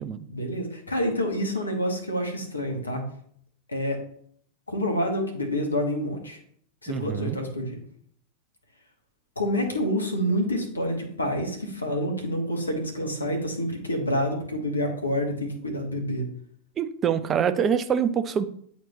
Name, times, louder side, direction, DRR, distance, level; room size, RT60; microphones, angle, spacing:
voice 1, 0.3-3.0 3.7-4.0 4.7-6.4 6.8-7.8 9.4-16.3, equal, 80° left, 3 dB, 1.3 m, -28 dB
voice 2, 6.9-7.4 16.8-18.4, right 7 dB, 25° right, 12 dB, 0.5 m, -25 dB
8.3 x 4.4 x 2.9 m, 0.63 s
figure-of-eight pair, 90°, 0 cm